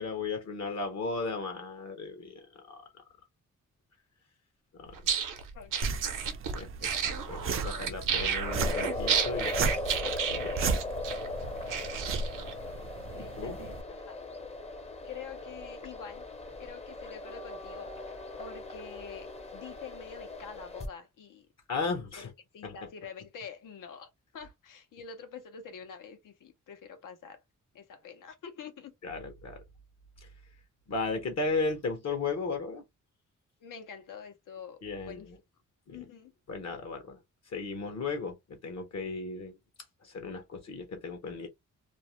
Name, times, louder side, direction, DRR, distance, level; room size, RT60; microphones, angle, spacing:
voice 1, 0.0-2.8 4.8-4.9 6.5-6.9 7.3-9.7 10.3-10.8 13.2-13.6 21.7-22.3 22.6-22.9 29.0-29.6 30.9-32.8 34.8-35.3 35.9-36.0 36.5-37.2 37.5-38.4 38.6-39.5 40.0-41.5, left 4 dB, 60° left, 0.8 m, -35 dB
sound 1, 4.9-12.5, right 7 dB, 85° right, 0.7 m, -32 dB
voice 2, 5.5-6.2 13.2-14.2 15.0-16.2 16.6-18.1 18.4-21.5 22.2-27.4 27.7-28.9 33.6-35.3 35.9-36.3, left 6 dB, 85° left, 0.8 m, -46 dB
sound 2, 5.8-13.8, right 4 dB, 45° right, 0.4 m, -35 dB
sound 3, 8.4-20.9, left 2 dB, 20° left, 0.6 m, -39 dB
2.5 x 2.1 x 3.0 m
wide cardioid pair, 120°, 31 cm